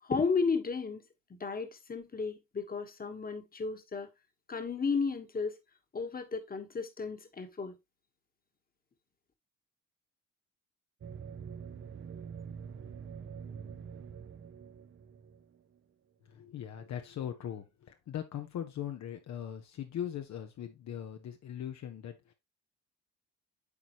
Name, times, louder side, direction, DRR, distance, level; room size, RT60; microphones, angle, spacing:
voice 1, 0.1-1.0 1.3-4.1 4.5-5.5 5.9-7.7, left 5 dB, 30° left, 1.3 m, -33 dB
sound 1, 11.0-15.8, right 7 dB, 40° right, 0.7 m, -45 dB
voice 2, 16.2-22.3, left 10 dB, 65° left, 0.9 m, -40 dB
8.4 x 4.1 x 3.0 m
cardioid pair, 90°, 30 cm